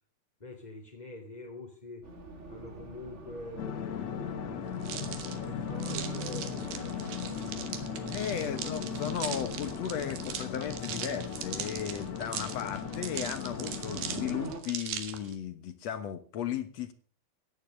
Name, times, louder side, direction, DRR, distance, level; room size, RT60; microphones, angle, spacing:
voice 1, 0.4-2.0 2.5-7.8 8.4-8.9, left 2 dB, 15° left, -1 dB, 2.0 m, -46 dB
Race car auto racing, 2.0-14.6, right 4 dB, 35° right, 1.1 m, -44 dB
sound 1, 3.6-14.5, left 10 dB, 90° left, 1.5 m, -38 dB
sound 2, 4.8-15.3, right 9 dB, 75° right, 3.6 m, -40 dB
voice 2, 8.1-16.9, left 9 dB, 65° left, 12 dB, 1.7 m, -35 dB
16.5 x 10.5 x 6.4 m, 0.42 s
omnidirectional pair, 4.5 m